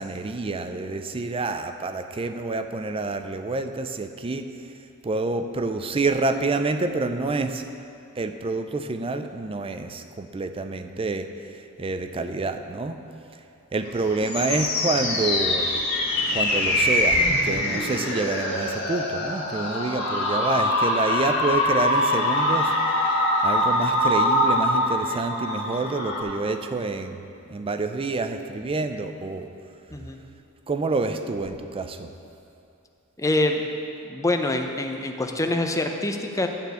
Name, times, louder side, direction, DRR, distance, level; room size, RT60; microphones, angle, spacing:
voice 1, 0.0-4.5 5.0-7.6 8.2-11.3 11.8-13.0 13.7-15.7 16.3-22.7 23.4-27.2 27.5-29.5 30.7-32.1, right 3 dB, 25° right, 8 dB, 0.4 m, -28 dB
sound 1, 13.8-26.2, left 1 dB, 55° left, 1.8 m, -24 dB
voice 2, 33.2-33.7 34.0-36.5, left 2 dB, 15° left, 4 dB, 0.6 m, -25 dB
12.0 x 4.4 x 8.0 m, 2.6 s
head